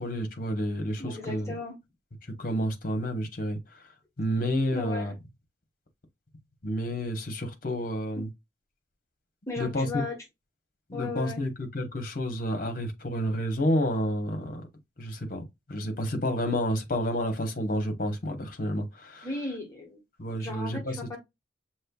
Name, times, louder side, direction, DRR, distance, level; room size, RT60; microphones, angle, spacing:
voice 1, 0.0-1.5 2.4-3.6 4.2-5.1 6.6-8.3 9.6-10.0 10.9-14.6 15.0-15.4 15.7-19.3 20.2-21.2, equal, 45° left, 1.2 m, -30 dB
voice 2, 1.0-1.7 4.7-5.1 9.5-10.1 10.9-11.4 19.2-20.0 20.4-21.2, left 3 dB, 15° left, 1.5 m, -36 dB
6.5 x 3.1 x 2.4 m
head